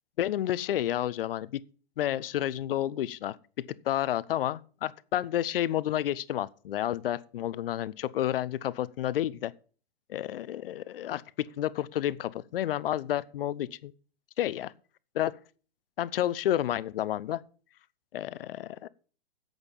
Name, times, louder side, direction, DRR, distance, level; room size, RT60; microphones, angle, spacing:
voice 1, 0.2-1.6 2.0-9.5 10.1-13.9 14.4-14.7 15.1-15.3 16.0-17.4 18.1-18.9, left 12 dB, 65° left, 0.8 m, -30 dB
9.0 x 8.1 x 7.0 m
hypercardioid pair, 120°, 31 cm